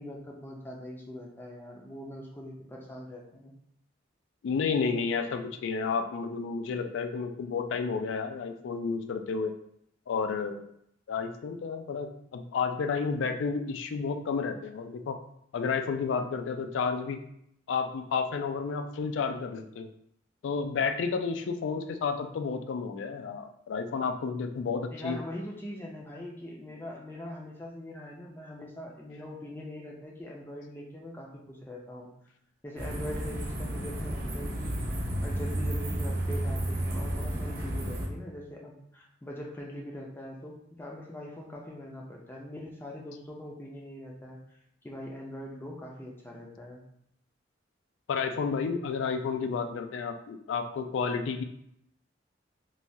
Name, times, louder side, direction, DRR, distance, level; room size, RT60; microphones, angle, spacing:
voice 1, 0.0-3.5 24.9-32.1 32.6-44.6 44.8-46.8, left 1 dB, 10° left, -2 dB, 0.4 m, -42 dB
voice 2, 4.4-9.5 10.1-10.7 11.1-15.2 15.5-17.2 17.7-19.9 20.4-25.2 48.1-51.4, left 5 dB, 80° left, 7 dB, 0.3 m, -31 dB
sound 1, 32.8-38.1, right 1 dB, 50° right, 0.7 m, -32 dB
3.1 x 2.3 x 2.6 m, 0.73 s
head